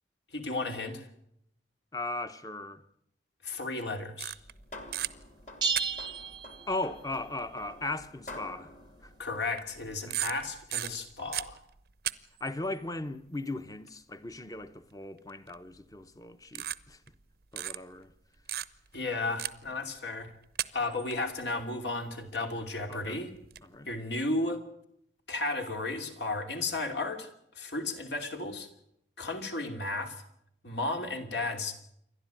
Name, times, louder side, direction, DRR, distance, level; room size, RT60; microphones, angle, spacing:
voice 1, 0.3-1.1 3.4-4.3 9.2-11.6 18.9-20.3 20.7-23.3 23.9-24.6 25.3-27.3 27.5-28.7 29.2-30.2 30.6-31.8, left 2 dB, 75° left, 2.8 m, -34 dB
voice 2, 1.9-2.8 6.7-8.7 9.0-9.1 10.0-10.3 12.4-17.0 17.5-18.1 22.9-23.2 23.6-23.9, left 2 dB, 20° left, 0.9 m, -37 dB
sound 1, 4.2-4.6 4.9-5.1 5.7-6.2 7.4-7.5 8.0-8.1 9.4-9.8 10.1-12.1 12.4-12.5 15.5-15.8 16.5-17.2 17.6-17.8 18.5-18.9 19.4-19.7 20.4-21.2 22.8-22.9 23.3-23.6, right 13 dB, 60° right, 0.7 m, -35 dB
sound 2, 4.3-10.1, left 1 dB, 40° left, 2.6 m, -49 dB
sound 3, 5.6-7.2, right 4 dB, 25° right, 0.7 m, -33 dB
28.0 x 12.0 x 9.0 m
head